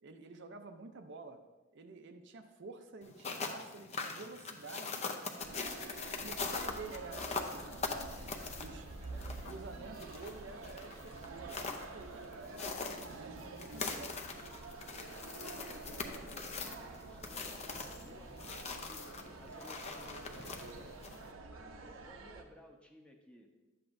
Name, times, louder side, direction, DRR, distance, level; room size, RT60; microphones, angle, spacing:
voice 1, 0.0-1.4 1.7-5.0 5.5-5.8 6.2-8.2 8.6-8.9 9.5-14.3, right 3 dB, 60° right, 7 dB, 0.5 m, -49 dB
sound 1, 3.0-21.3, left 4 dB, 35° left, 0.6 m, -43 dB
sound 2, 5.4-22.4, right 3 dB, 85° right, 0.8 m, -48 dB
voice 2, 9.1-9.9 15.5-20.9 21.8-23.5, left 1 dB, 5° left, 2 dB, 0.8 m, -57 dB
11.0 x 7.8 x 2.6 m, 1.2 s
head